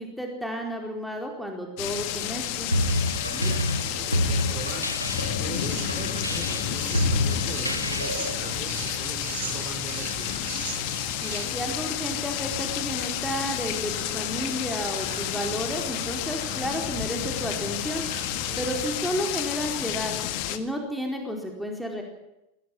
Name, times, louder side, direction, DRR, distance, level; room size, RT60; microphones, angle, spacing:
voice 1, 0.0-2.7 11.2-18.0 18.6-20.2 20.5-22.0, equal, ahead, 1 dB, 4.4 m, -32 dB
sound 1, 1.8-20.6, left 12 dB, 45° left, 1.9 m, -31 dB
sound 2, 2.7-8.4, left 1 dB, 90° right, 2.0 m, -28 dB
voice 2, 2.9-4.9 5.4-10.4 18.3-18.7, right 4 dB, 30° right, 6 dB, 4.9 m, -40 dB
sound 3, 5.0-18.9, right 4 dB, 60° right, 4.9 m, -40 dB
21.0 x 19.0 x 7.6 m, 0.89 s
figure-of-eight pair, 90°, 0 cm